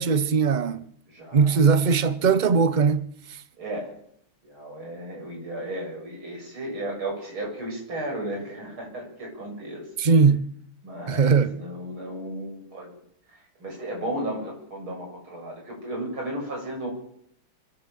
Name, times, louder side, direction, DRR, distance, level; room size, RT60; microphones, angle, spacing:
voice 1, 0.0-0.9 1.3-3.1 10.0-10.4 11.1-11.5, right 5 dB, 50° right, 0.5 m, -20 dB
voice 2, 1.1-1.6 3.6-3.9 4.4-9.9 10.8-12.9 13.6-16.9, right 1 dB, 75° right, 8.6 m, -34 dB
24.5 x 14.0 x 7.7 m
omnidirectional pair, 2.3 m